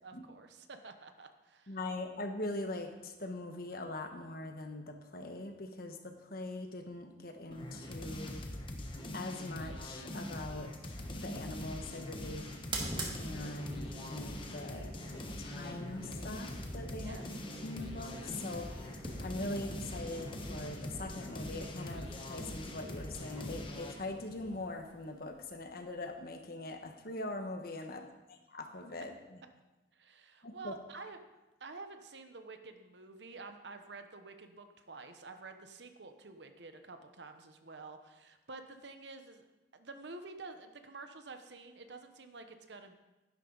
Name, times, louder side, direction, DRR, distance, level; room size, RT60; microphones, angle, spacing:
voice 1, 0.0-1.8 12.2-12.6 17.0-17.2 29.9-31.2 31.6-39.4 39.7-43.0, right 3 dB, 75° right, 7 dB, 1.0 m, -49 dB
voice 2, 1.7-8.4 9.1-10.7 11.2-12.4 13.1-17.2 17.6-28.0 28.3-29.4 30.4-30.7, left 2 dB, 55° left, 5 dB, 1.3 m, -42 dB
sound 1, 7.5-24.0, left 1 dB, 30° left, 1.1 m, -43 dB
sound 2, 10.9-26.2, right 1 dB, 25° right, 1.8 m, -47 dB
11.5 x 11.0 x 4.0 m, 1.1 s
head